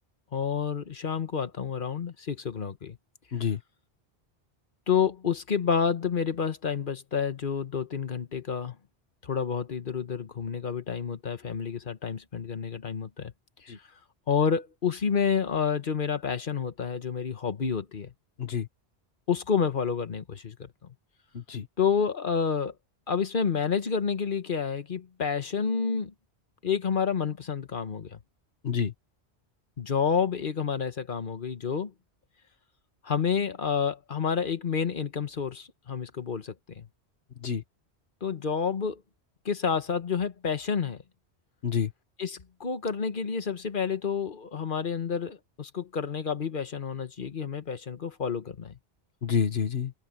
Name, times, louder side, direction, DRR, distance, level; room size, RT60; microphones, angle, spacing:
voice 1, 0.3-3.0 4.9-8.8 9.2-13.3 13.6-13.7 14.3-18.1 19.3-20.7 21.8-22.7 23.1-26.1 26.6-28.2 29.8-31.9 33.0-36.9 38.2-39.0 39.4-41.0 42.2-48.7, left 6 dB, 55° left, 1.3 m, -29 dB
voice 2, 21.3-21.7 28.6-28.9 37.4-37.6 41.6-41.9 49.2-49.9, left 7 dB, 70° left, 1.6 m, -28 dB
omnidirectional pair, 1.1 m